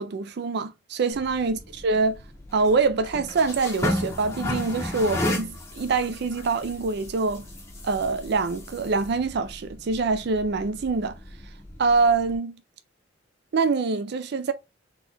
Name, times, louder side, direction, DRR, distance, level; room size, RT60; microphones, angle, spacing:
voice 1, 0.0-2.2 2.5-7.5 7.8-11.2 11.8-12.6 13.5-14.5, right 4 dB, 60° right, 0.4 m, -25 dB
sound 1, 1.1-12.3, left 1 dB, 15° left, 1.6 m, -34 dB
4.3 x 3.7 x 3.3 m
head